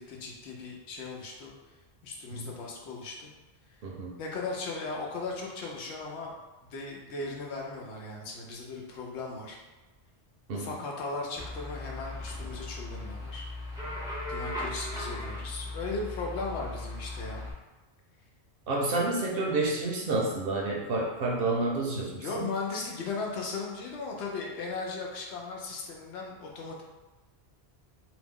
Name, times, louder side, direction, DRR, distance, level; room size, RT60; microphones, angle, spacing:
voice 1, 0.0-1.5 2.0-3.3 4.2-6.3 6.7-9.6 10.5-13.5 14.3-17.4 22.2-26.8, left 3 dB, 85° left, -1 dB, 0.9 m, -37 dB
voice 2, 3.8-4.1 10.5-10.7 18.7-22.4, right 2 dB, 65° right, -1 dB, 0.8 m, -29 dB
sound 1, 11.4-17.5, left 2 dB, 5° right, 0.4 m, -38 dB
2.7 x 2.0 x 3.5 m, 1.2 s
omnidirectional pair, 1.1 m